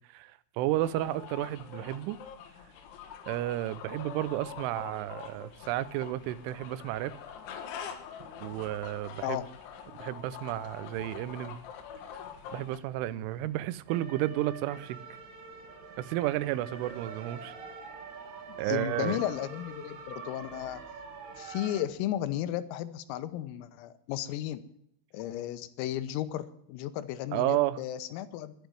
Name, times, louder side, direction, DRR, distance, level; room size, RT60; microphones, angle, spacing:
voice 1, 0.1-2.2 3.3-7.1 8.4-9.4 9.9-11.6 12.5-15.0 16.0-17.5 18.6-19.2 27.3-27.8, right 15 dB, 80° right, 3.0 m, -32 dB
sound 1, 0.8-12.8, left 8 dB, 70° left, 3.8 m, -45 dB
sound 2, 4.2-21.8, right 5 dB, 50° right, 2.4 m, -48 dB
voice 2, 18.5-20.8 21.4-24.6 25.1-28.5, left 12 dB, 90° left, 3.6 m, -34 dB
11.5 x 11.0 x 9.4 m
omnidirectional pair, 5.9 m